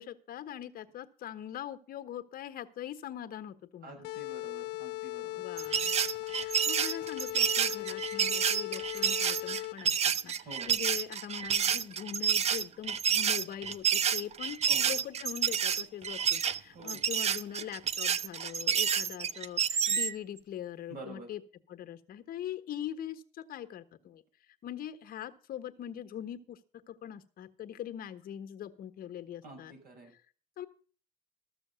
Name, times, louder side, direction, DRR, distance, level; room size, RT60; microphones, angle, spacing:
voice 1, 0.0-4.1 5.3-5.9 6.3-10.3 10.7-21.4 21.7-24.2 24.6-26.6 26.9-29.7 30.6-30.7, left 10 dB, 60° left, 9 dB, 1.2 m, -42 dB
voice 2, 3.8-5.4 10.4-10.7 14.7-15.0 16.7-17.0 20.9-21.3 29.4-30.1, right 2 dB, 60° right, 2 dB, 5.8 m, -48 dB
sound 1, 4.0-10.0, left 19 dB, 80° left, 0.5 m, -38 dB
sound 2, 5.6-20.1, right 7 dB, 40° right, 0.6 m, -29 dB
14.0 x 6.9 x 6.9 m, 0.41 s
cardioid pair, 110°, 17 cm